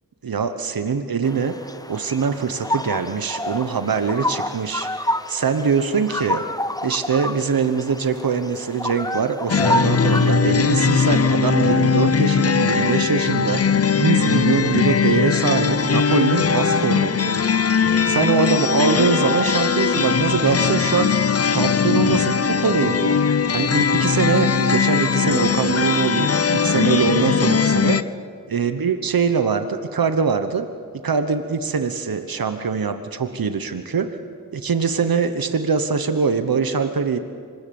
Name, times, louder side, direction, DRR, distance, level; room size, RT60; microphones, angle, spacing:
voice 1, 0.2-1.5 1.9-6.4 6.8-17.4 18.1-21.1 21.5-23.2 23.5-28.0 28.5-30.7 31.0-34.2 34.5-37.2, right 5 dB, 85° right, 8 dB, 1.1 m, -23 dB
sound 1, 1.2-10.3, left 1 dB, 10° left, 1.0 m, -28 dB
sound 2, 9.5-28.0, left 6 dB, 45° left, 0.7 m, -19 dB
25.0 x 20.5 x 7.1 m, 2.1 s
cardioid pair, 45°, 35 cm